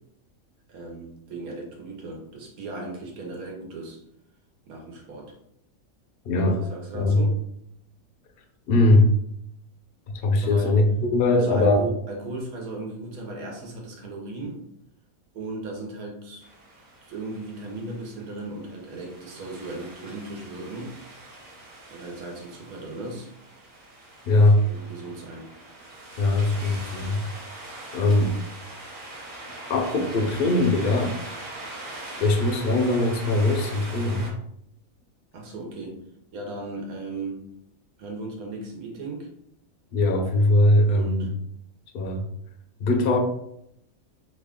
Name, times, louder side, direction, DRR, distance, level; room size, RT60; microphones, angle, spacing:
voice 1, 0.7-4.0 4.7-5.3 6.5-7.4 10.4-10.8 11.3-14.7 15.3-16.5 17.0-21.0 21.9-23.3 24.3-25.5 35.3-36.0 36.3-37.5 38.0-39.3 40.9-41.4, right 2 dB, 85° right, 0 dB, 1.3 m, -37 dB
voice 2, 6.3-6.6 6.9-7.3 8.7-9.1 10.2-11.9 24.2-24.6 26.2-27.2 27.9-28.3 29.7-31.2 32.2-34.3 39.9-41.3 41.9-42.2 42.8-43.2, left 2 dB, 60° left, 4 dB, 0.6 m, -20 dB
sound 1, 16.4-34.3, right 2 dB, 65° right, 1.3 m, -42 dB
3.1 x 2.3 x 3.5 m, 0.74 s
omnidirectional pair, 1.5 m